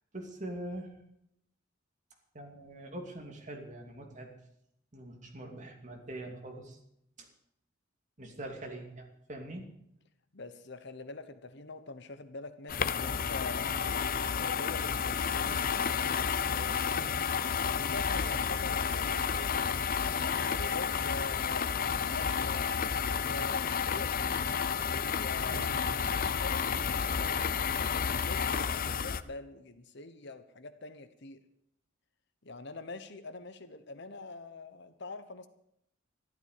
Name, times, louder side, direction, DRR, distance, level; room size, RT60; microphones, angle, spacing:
voice 1, 0.1-0.9 2.3-4.3 4.9-6.8 7.2-7.3 8.2-9.7 15.4-15.7 16.9-17.2 25.5-25.8, right 1 dB, 40° right, 3 dB, 2.8 m, -43 dB
voice 2, 10.3-13.8 14.3-15.6 16.4-19.6 20.2-24.4 24.9-25.7 26.4-31.4 32.4-35.5, left 3 dB, 65° left, 11 dB, 1.2 m, -45 dB
sound 1, 12.7-29.2, left 6 dB, 50° left, 0.6 m, -31 dB
13.5 x 12.5 x 6.8 m, 0.75 s
head